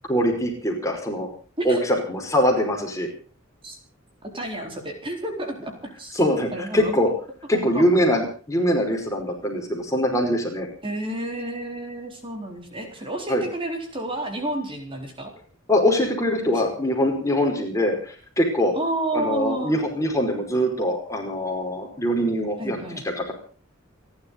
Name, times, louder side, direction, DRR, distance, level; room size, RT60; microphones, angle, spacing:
voice 1, 0.1-1.3 1.6-3.1 6.1-7.1 7.5-10.7 13.3-13.4 15.7-18.7 19.1-22.8 23.0-23.3, equal, 15° left, 2 dB, 5.1 m, -23 dB
voice 2, 1.6-2.0 3.6-3.8 4.2-6.2 6.5-7.0 7.5-7.8 10.8-15.3 16.5-16.7 18.7-19.8 22.6-23.0, right 1 dB, 25° right, 3 dB, 4.0 m, -30 dB
29.0 x 12.0 x 3.9 m, 0.40 s
head